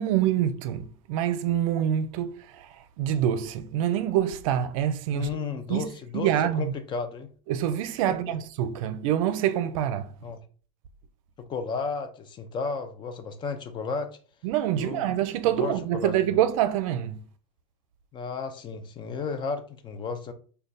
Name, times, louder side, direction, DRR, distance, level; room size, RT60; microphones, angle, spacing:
voice 1, 0.0-5.3 5.7-5.9 6.1-6.7 7.5-10.1 14.4-17.2, right 11 dB, 70° right, 0.5 m, -26 dB
voice 2, 5.1-7.3 8.1-8.4 10.2-10.4 11.4-14.1 14.7-16.1 18.1-20.3, left 5 dB, 25° left, 0.5 m, -33 dB
3.3 x 2.2 x 4.0 m
supercardioid pair, 130°, 18 cm